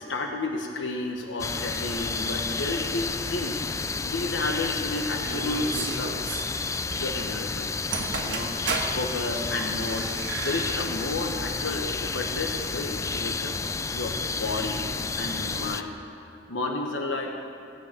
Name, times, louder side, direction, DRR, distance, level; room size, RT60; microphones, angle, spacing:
voice 1, 0.0-3.7 4.0-6.2 6.9-7.7 8.2-8.5 8.9-10.1 10.4-13.6 13.9-16.0 16.5-17.3, left 2 dB, 85° left, 2 dB, 1.1 m, -31 dB
sound 1, 1.4-15.8, left 4 dB, 15° left, 0.3 m, -31 dB
sound 2, 5.2-6.5 7.7-7.8 7.9-9.0 9.4-11.1 11.4-11.6 12.6-12.8, right 4 dB, 90° right, 1.4 m, -34 dB
16.0 x 5.6 x 8.4 m, 2.4 s
head